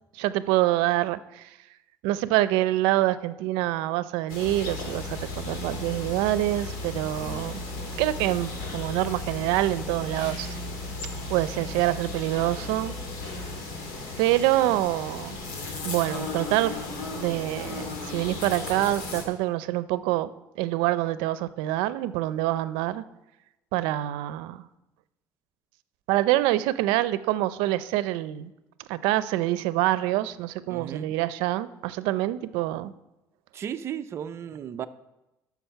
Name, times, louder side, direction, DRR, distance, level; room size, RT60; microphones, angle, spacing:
voice 1, 0.1-1.6 2.0-7.6 8.0-10.6 11.3-12.9 14.2-15.4 15.8-16.7 17.1-20.3 20.6-23.0 23.7-24.6 26.1-28.5 28.8-32.9, right 15 dB, 90° right, 15 dB, 0.5 m, -26 dB
sound 1, 4.3-19.3, left 3 dB, 85° left, 2.5 m, -36 dB
sound 2, 4.4-13.6, left 2 dB, 65° left, 2.4 m, -39 dB
voice 2, 30.7-31.1 33.5-34.9, right 9 dB, 35° right, 11 dB, 0.5 m, -35 dB
13.0 x 6.0 x 5.6 m, 0.97 s
cardioid pair, 155°, 8 cm